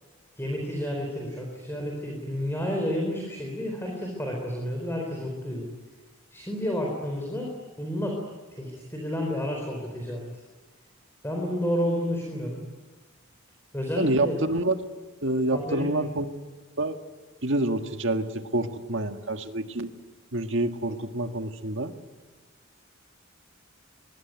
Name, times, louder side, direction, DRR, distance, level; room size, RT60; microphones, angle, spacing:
voice 1, 0.4-5.7 6.3-7.5 7.8-8.2 8.5-10.2 11.2-12.6 13.7-14.4 15.5-15.9, equal, 10° left, 0 dB, 4.3 m, -30 dB
voice 2, 14.0-14.8 15.2-16.3 16.8-17.0 17.4-19.9 20.3-21.9, right 2 dB, 60° right, 6 dB, 1.8 m, -27 dB
23.0 x 23.0 x 9.5 m, 1.4 s
head